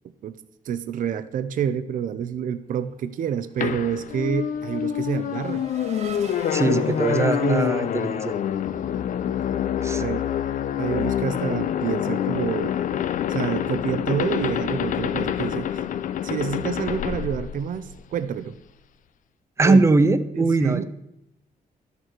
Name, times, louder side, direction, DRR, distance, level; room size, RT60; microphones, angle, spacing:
voice 1, 0.2-5.7 6.7-6.8 7.1-7.7 10.0-10.3 10.8-12.7 13.3-15.9 16.2-18.6 19.6-19.8 20.3-20.8, right 8 dB, 65° right, 12 dB, 0.6 m, -28 dB
Race car auto racing / Accelerating revving vroom, 3.0-9.1, right 4 dB, 50° right, 1.0 m, -43 dB
sound 1, 3.6-18.2, left 10 dB, 60° left, 0.5 m, -26 dB
voice 2, 6.5-8.3 9.8-10.0 19.6-20.8, right 3 dB, 20° right, 13 dB, 0.6 m, -21 dB
12.5 x 6.7 x 4.5 m, 0.81 s
cardioid pair, 135°, 15 cm